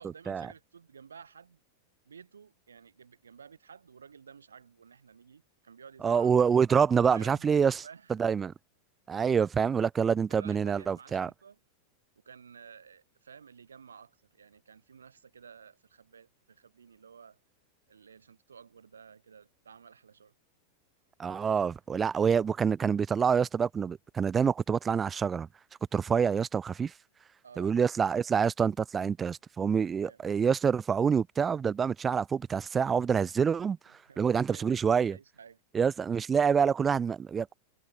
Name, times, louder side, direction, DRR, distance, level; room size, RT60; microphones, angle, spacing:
voice 1, 0.0-1.6 2.1-6.4 7.1-8.1 10.3-11.6 12.2-17.4 17.9-20.3 27.4-27.8 30.0-30.2 34.0-35.6, right 6 dB, 70° right, 5.9 m, -53 dB
voice 2, 6.0-7.8 8.2-8.5 9.1-11.3 21.2-25.5 25.9-26.9 27.6-33.8 34.2-35.2 35.7-37.5, right 6 dB, 20° right, 1.5 m, -26 dB
figure-of-eight pair, 90°, 0 cm